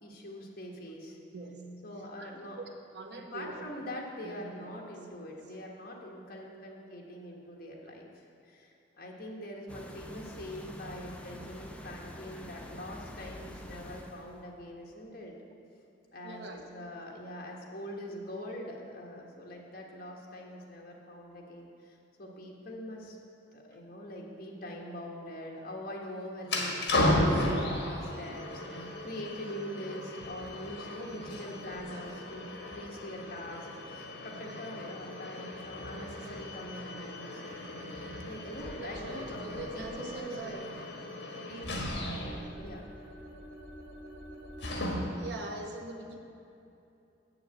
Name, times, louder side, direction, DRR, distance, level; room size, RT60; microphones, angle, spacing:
voice 1, 0.0-1.2 1.8-2.6 3.3-15.3 16.1-16.4 16.7-23.2 23.5-37.4 38.3-39.5 39.7-40.7 41.4-41.8 42.6-42.8, left 1 dB, 55° left, -1 dB, 1.6 m, -43 dB
voice 2, 1.3-1.7 2.2-2.3 2.6-2.7 2.9-3.7 4.2-4.7 5.3-5.4 11.8-11.9 16.2-16.6 16.9-17.1 38.8-40.5 45.2-46.2, right 2 dB, 65° right, 2 dB, 1.1 m, -43 dB
sound 1, 9.7-14.5, equal, 5° left, 0.6 m, -46 dB
sound 2, 26.4-45.3, left 1 dB, 70° left, 1.5 m, -35 dB
8.0 x 6.8 x 7.7 m, 2.7 s
head